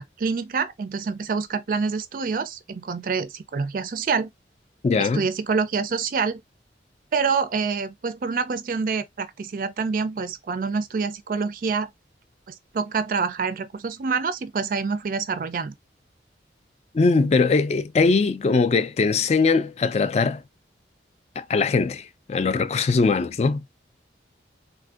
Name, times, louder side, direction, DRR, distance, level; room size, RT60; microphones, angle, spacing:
voice 1, 0.0-4.3 5.0-6.4 7.1-11.9 12.5-15.7, right 5 dB, 50° right, 0.4 m, -26 dB
voice 2, 4.8-5.3 16.9-20.4 21.4-23.6, left 4 dB, 35° left, 0.3 m, -21 dB
3.4 x 2.6 x 2.4 m
head